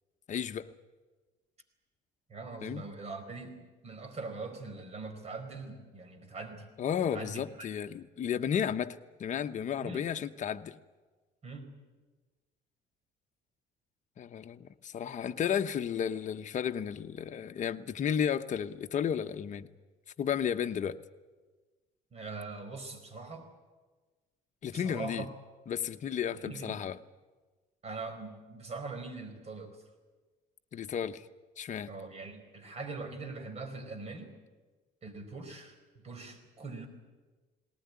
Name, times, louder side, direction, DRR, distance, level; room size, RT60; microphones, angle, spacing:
voice 1, 0.3-0.7 2.6-2.8 6.8-10.8 14.2-19.7 20.2-21.0 24.6-25.3 25.7-27.0 30.7-31.3 31.6-31.9, left 8 dB, 45° left, 1.0 m, -33 dB
voice 2, 2.3-6.7 7.1-7.7 9.8-10.1 11.4-11.7 22.1-23.5 24.7-25.3 26.3-26.8 27.8-29.8 31.9-34.4 35.0-36.9, right 3 dB, 40° right, 4.6 m, -42 dB
19.5 x 19.0 x 9.7 m
cardioid pair, 110°, 17 cm